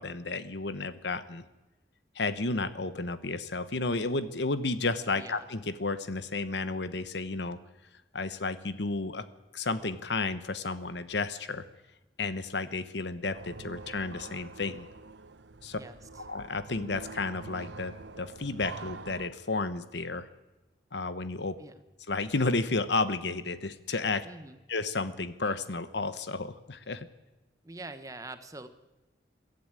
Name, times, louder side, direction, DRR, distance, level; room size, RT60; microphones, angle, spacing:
voice 1, 0.0-1.4 2.1-7.6 8.1-9.2 9.5-11.6 12.2-14.9 15.6-15.8 16.3-20.3 20.9-21.6 22.1-24.3 24.7-27.1, left 3 dB, 70° left, 12 dB, 1.1 m, -32 dB
sound 1, 13.3-19.3, right 3 dB, 75° right, 0.9 m, -45 dB
voice 2, 24.2-24.6 27.6-28.7, right 2 dB, 20° right, 9 dB, 1.2 m, -44 dB
22.5 x 13.5 x 9.0 m, 1.1 s
head